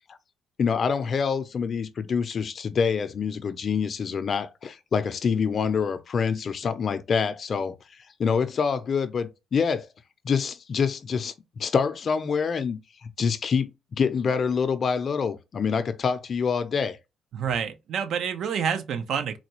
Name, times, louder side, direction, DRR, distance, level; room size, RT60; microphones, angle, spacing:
voice 1, 0.6-7.8 8.2-9.9 10.2-17.0, left 6 dB, 50° left, 0.5 m, -26 dB
voice 2, 17.3-19.4, right 7 dB, 70° right, 0.6 m, -28 dB
4.0 x 2.3 x 3.0 m
cardioid pair, 90°, 0 cm